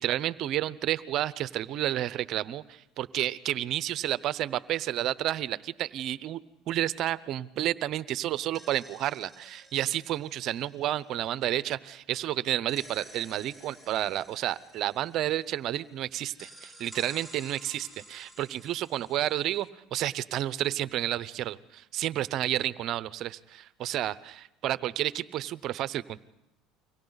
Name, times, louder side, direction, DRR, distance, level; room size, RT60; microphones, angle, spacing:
voice 1, 0.0-26.2, right 13 dB, 55° right, 17 dB, 0.8 m, -31 dB
sound 1, 8.3-12.0 12.7-15.9 16.3-19.7, equal, 15° left, 3.3 m, -52 dB
29.5 x 24.0 x 4.1 m, 0.90 s
hypercardioid pair, 85°, 0 cm